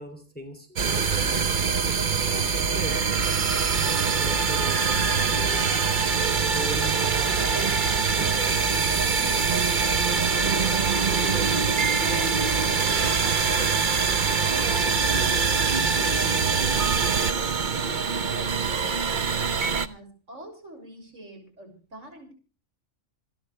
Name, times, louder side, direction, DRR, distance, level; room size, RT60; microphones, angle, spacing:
voice 1, 0.0-3.5 3.8-5.7 6.1-7.1 7.4-7.8 8.2-9.6 10.1-10.8 11.1-13.9 14.2-15.6 15.9-17.3, equal, 5° left, 5 dB, 3.2 m, -41 dB
sound 1, 0.8-19.9, right 5 dB, 40° right, 1.0 m, -23 dB
voice 2, 18.2-22.3, right 1 dB, 65° right, 4 dB, 6.7 m, -45 dB
27.5 x 10.5 x 3.3 m, 0.35 s
omnidirectional pair, 1.4 m